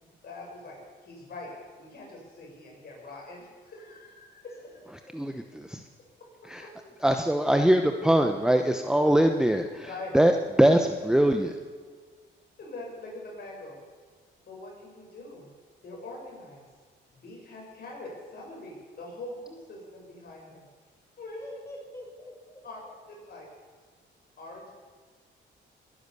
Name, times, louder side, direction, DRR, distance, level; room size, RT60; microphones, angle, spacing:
voice 1, 0.2-4.8 6.4-6.7 9.9-10.1 12.6-13.8 14.5-15.5 15.8-16.6 17.2-20.7 21.2-21.4 22.6-22.8 23.3-23.5 24.4-24.7, left 2 dB, 50° left, -2 dB, 6.8 m, -43 dB
voice 2, 4.4-5.1 9.3-10.1 21.3-22.9, left 1 dB, 15° left, -1 dB, 5.5 m, -48 dB
voice 3, 5.1-5.8 6.5-6.7 7.0-9.9 10.1-11.6, right 1 dB, 5° right, 5 dB, 0.9 m, -22 dB
20.5 x 10.0 x 6.9 m, 1.5 s
cardioid pair, 90°, 20 cm